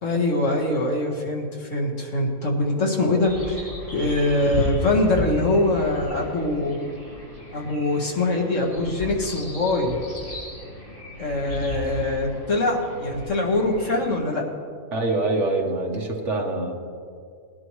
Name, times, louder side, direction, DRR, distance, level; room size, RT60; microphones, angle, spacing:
voice 1, 0.0-6.8 7.5-9.9 11.2-14.4, left 2 dB, 60° left, 0 dB, 2.0 m, -23 dB
sound 1, 3.2-14.2, left 1 dB, 85° left, 4.3 m, -35 dB
voice 2, 14.9-16.7, right 2 dB, 60° right, 1 dB, 1.6 m, -25 dB
19.5 x 11.0 x 3.2 m, 2.2 s
omnidirectional pair, 1.4 m